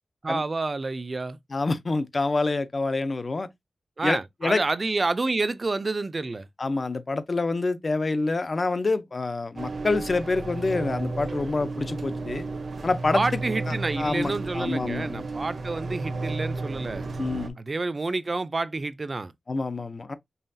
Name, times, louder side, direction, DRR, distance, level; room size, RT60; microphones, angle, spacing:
voice 1, 0.2-1.4 4.0-6.5 13.1-17.1 17.6-19.3, right 3 dB, 40° right, 0.4 m, -29 dB
voice 2, 1.5-3.5 4.0-4.6 6.6-12.4 12.8-13.3 13.7-15.2 17.2-17.6 19.5-20.1, left 3 dB, 45° left, 0.6 m, -27 dB
sound 1, 9.6-17.5, right 3 dB, 70° right, 0.7 m, -33 dB
5.5 x 2.3 x 2.6 m
wide cardioid pair, 95°, 0 cm